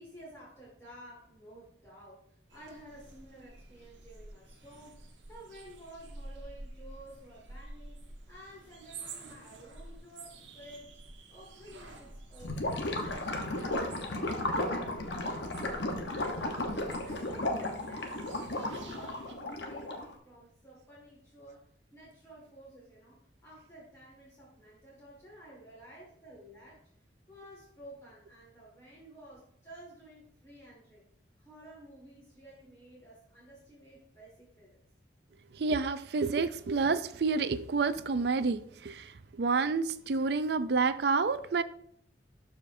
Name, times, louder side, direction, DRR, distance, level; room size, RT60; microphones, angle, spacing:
voice 1, 0.0-2.2 2.5-8.0 8.3-10.9 11.3-12.6 12.9-18.1 18.5-21.6 21.9-26.8 27.3-31.0 31.4-34.8, right 1 dB, 15° left, -6 dB, 1.9 m, -53 dB
sound 1, 2.5-19.3, right 2 dB, 80° right, 1.2 m, -50 dB
Gurgling / Liquid, 12.4-20.1, left 1 dB, 65° left, 1.0 m, -34 dB
voice 2, 35.5-41.6, right 4 dB, 60° right, 13 dB, 0.4 m, -29 dB
12.0 x 5.0 x 2.7 m, 0.66 s
head